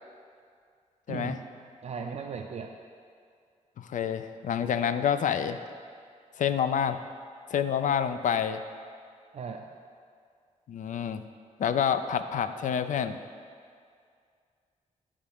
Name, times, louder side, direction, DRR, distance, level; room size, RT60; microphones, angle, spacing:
voice 1, 1.1-1.4 1.8-2.7 9.3-9.6, right 6 dB, 55° right, 4 dB, 0.4 m, -37 dB
voice 2, 3.8-5.6 6.4-7.0 7.5-8.6 10.7-11.2 11.6-13.2, left 8 dB, 80° left, 11 dB, 0.4 m, -28 dB
14.0 x 4.9 x 3.6 m, 2.2 s
wide cardioid pair, 150°, 13 cm